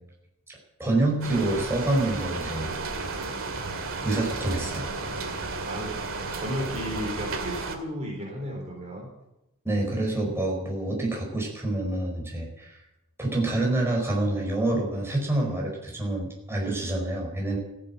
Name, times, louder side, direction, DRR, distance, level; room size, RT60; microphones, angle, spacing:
voice 1, 0.5-2.7 4.0-4.9 9.6-12.8 13.2-17.6, right 2 dB, 10° right, -1 dB, 4.9 m, -27 dB
sound 1, 1.2-7.8, right 3 dB, 65° right, 2.3 m, -33 dB
voice 2, 5.6-6.0 6.3-9.1, equal, 30° right, -1 dB, 4.1 m, -34 dB
15.5 x 10.0 x 8.8 m, 0.89 s
head